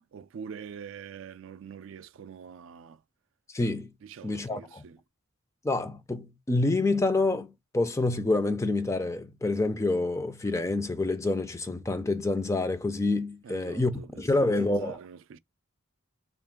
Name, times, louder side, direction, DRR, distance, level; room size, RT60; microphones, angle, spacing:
voice 1, 0.0-3.0 4.0-5.0 13.4-15.4, right 7 dB, 65° right, 0.3 m, -44 dB
voice 2, 3.5-3.9 4.2-4.8 5.6-15.0, left 2 dB, 15° left, 0.4 m, -27 dB
3.6 x 2.4 x 3.6 m
head